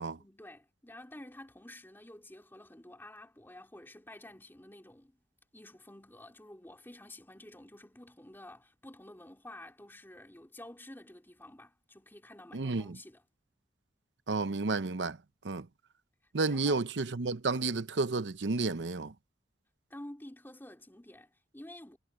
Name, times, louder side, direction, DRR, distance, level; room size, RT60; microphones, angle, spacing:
voice 1, 0.2-5.2 5.5-13.2 16.5-16.8 19.9-22.0, left 1 dB, 10° left, 2.6 m, -50 dB
voice 2, 12.5-12.8 14.3-15.2 15.4-15.7 16.3-19.1, right 3 dB, 90° right, 0.8 m, -31 dB
head